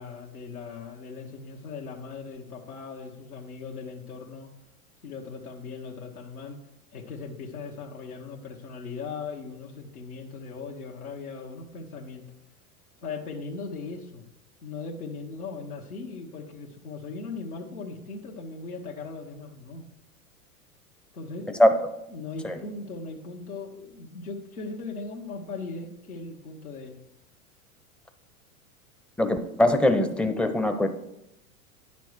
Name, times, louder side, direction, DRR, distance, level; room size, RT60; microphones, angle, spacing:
voice 1, 0.0-4.5 5.0-6.6 6.9-12.2 13.0-14.2 14.6-19.8 21.1-21.5 22.1-27.0, left 4 dB, 85° left, -2 dB, 1.3 m, -38 dB
voice 2, 29.2-30.9, left 1 dB, ahead, 7 dB, 0.6 m, -21 dB
9.7 x 5.9 x 4.6 m, 0.85 s
hypercardioid pair, 95°, 43 cm